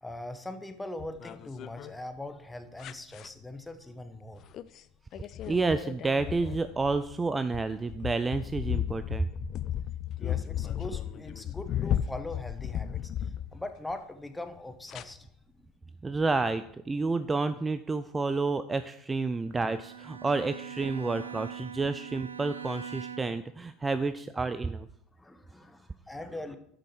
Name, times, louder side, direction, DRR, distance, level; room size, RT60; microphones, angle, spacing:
voice 1, 0.0-4.5 10.2-15.3 21.0-21.3 23.8-23.9 24.6-24.7 25.2-26.6, left 2 dB, 10° left, 8 dB, 1.1 m, -41 dB
sound 1, 1.0-1.9 2.8-3.3 4.5-4.8 5.1-13.9 14.9-15.0, left 11 dB, 45° left, 0.4 m, -35 dB
voice 2, 5.5-9.3 16.0-24.9, right 3 dB, 20° right, 12 dB, 0.4 m, -30 dB
Bowed string instrument, 19.5-23.6, right 8 dB, 85° right, 0.5 m, -42 dB
11.5 x 6.4 x 4.6 m, 0.72 s
figure-of-eight pair, 70°, 0 cm